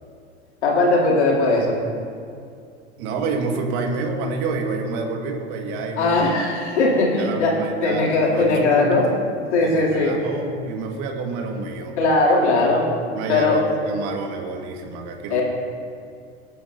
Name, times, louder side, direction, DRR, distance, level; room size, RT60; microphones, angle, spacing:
voice 1, 0.6-1.8 6.0-7.5 7.8-9.1 9.5-10.2 12.0-12.8 13.3-13.6 15.3-15.4, left 3 dB, 85° left, -3 dB, 3.1 m, -19 dB
voice 2, 3.0-6.3 7.2-9.1 9.6-12.0 13.1-15.4, right 3 dB, 60° right, 2 dB, 2.0 m, -28 dB
18.5 x 10.0 x 2.8 m, 2.3 s
hypercardioid pair, 95°, 34 cm